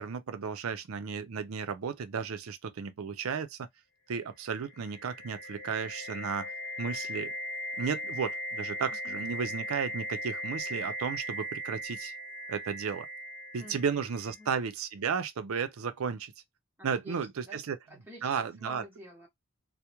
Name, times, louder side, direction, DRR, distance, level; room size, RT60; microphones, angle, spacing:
voice 1, 0.0-3.7 4.1-6.5 6.8-7.3 7.8-12.1 12.5-13.1 13.5-16.3 16.8-17.8 18.2-18.8, right 6 dB, 80° right, 0.5 m, -34 dB
sound 1, 4.5-14.4, equal, 65° left, 0.7 m, -38 dB
voice 2, 8.9-9.2 13.6-13.8 14.4-14.5 16.8-17.6 17.9-19.3, equal, 10° right, 0.8 m, -49 dB
2.2 x 2.1 x 2.9 m
head